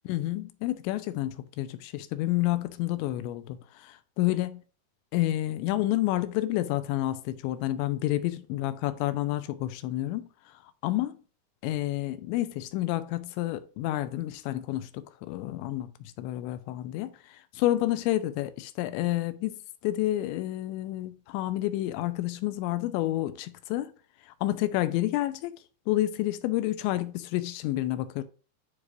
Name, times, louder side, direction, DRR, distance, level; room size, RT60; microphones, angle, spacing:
voice 1, 0.1-4.6 5.1-10.3 10.8-11.2 11.6-23.9 24.3-25.5 25.9-28.2, left 15 dB, 90° left, 2.9 m, -29 dB
11.0 x 4.8 x 2.5 m
omnidirectional pair, 5.2 m